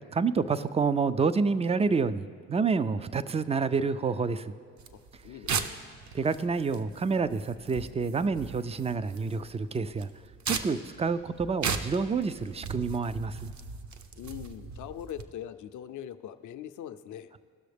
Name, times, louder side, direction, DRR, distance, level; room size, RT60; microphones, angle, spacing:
voice 1, 0.1-4.5 6.1-10.1 10.5-13.5, right 5 dB, 20° right, 14 dB, 0.3 m, -28 dB
sound 1, 4.8-15.2, right 5 dB, 50° right, 0.7 m, -38 dB
voice 2, 4.9-5.8 14.2-17.3, left 10 dB, 55° left, 10 dB, 0.5 m, -42 dB
16.5 x 6.2 x 3.4 m, 2.2 s
supercardioid pair, 65°, 38 cm